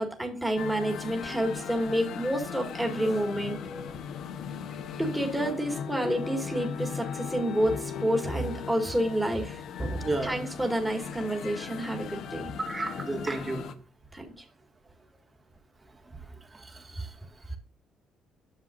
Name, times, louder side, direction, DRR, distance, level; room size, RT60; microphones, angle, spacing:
voice 1, 0.0-3.9 5.0-12.5 14.1-14.4, right 1 dB, 10° right, 2.0 m, -29 dB
sound 1, 0.6-13.7, left 7 dB, 70° left, 0.9 m, -38 dB
voice 2, 10.0-10.3 12.6-13.7 16.5-17.1, right 2 dB, 25° right, 1.7 m, -32 dB
9.8 x 7.2 x 2.5 m
cardioid pair, 100°, 0 cm